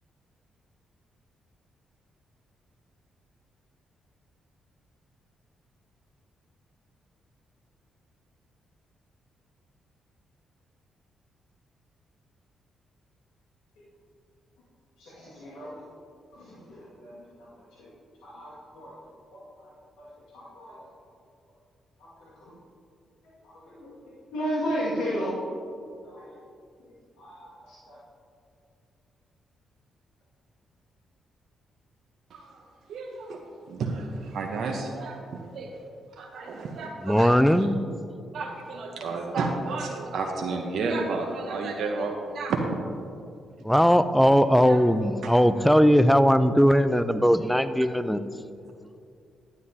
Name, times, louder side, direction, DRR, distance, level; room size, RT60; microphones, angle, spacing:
voice 1, 15.0-15.8 16.3-17.3 17.8-17.9 18.2-18.9 19.3-19.7 20.0-20.1 20.3-20.9 22.2-22.5 23.4-23.9 24.3-25.4 26.0-26.4 27.2-28.0, equal, 85° left, -9 dB, 2.0 m, -34 dB
voice 2, 32.3-32.6 32.9-33.4 33.7-35.7 36.2-37.7 38.3-42.6 44.6-44.8 45.2-45.3, right 3 dB, 70° right, 1 dB, 0.8 m, -31 dB
voice 3, 37.0-37.8 43.6-48.2, equal, ahead, 12 dB, 0.5 m, -19 dB
11.0 x 9.4 x 2.8 m, 2.4 s
supercardioid pair, 50°, 0 cm